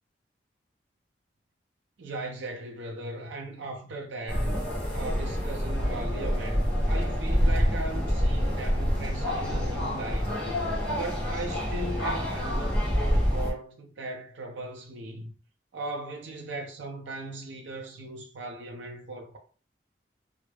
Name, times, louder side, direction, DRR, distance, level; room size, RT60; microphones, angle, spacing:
voice 1, 2.0-4.5 4.9-10.4 10.9-15.3 15.7-19.4, right 2 dB, 85° right, 0.5 m, -38 dB
sound 1, 4.3-13.5, equal, 5° left, 0.7 m, -27 dB
2.2 x 2.0 x 3.1 m
head